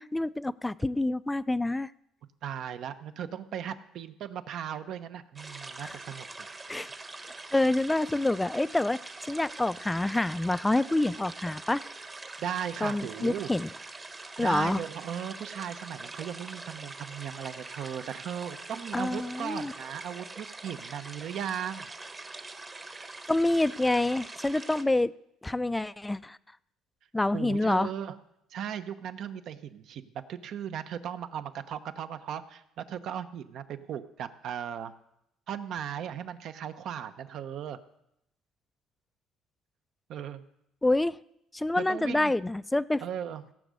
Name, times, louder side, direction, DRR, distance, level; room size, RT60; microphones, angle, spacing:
voice 1, 0.0-1.9 5.8-5.9 6.7-6.9 7.5-11.9 12.8-13.7 14.4-14.8 18.9-19.7 23.3-25.1 25.4-26.4 27.1-27.9 40.8-41.2 41.5-43.0, left 2 dB, 10° left, 17 dB, 0.4 m, -27 dB
voice 2, 2.4-6.3 12.4-13.5 14.4-21.9 27.3-28.2 28.5-34.9 35.5-37.8 40.1-40.4 41.8-42.3 43.0-43.4, right 9 dB, 60° right, 11 dB, 0.9 m, -37 dB
sound 1, 5.4-24.8, right 3 dB, 25° right, 1.1 m, -44 dB
17.0 x 6.4 x 8.2 m, 0.80 s
cardioid pair, 110°, 0 cm